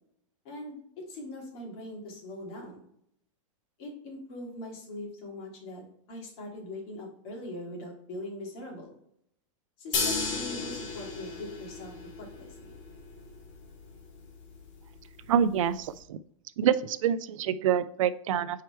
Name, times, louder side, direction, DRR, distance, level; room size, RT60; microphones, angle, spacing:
voice 1, 0.4-0.8 1.1-2.8 3.8-8.9 9.8-11.9 12.2-12.7, left 1 dB, 50° left, -1 dB, 2.6 m, -41 dB
sound 1, 9.9-16.0, left 4 dB, 70° left, 2.0 m, -36 dB
voice 2, 15.3-16.2 16.6-18.6, right 9 dB, 80° right, 15 dB, 0.5 m, -26 dB
4.8 x 4.6 x 4.3 m, 0.71 s
supercardioid pair, 135°, 17 cm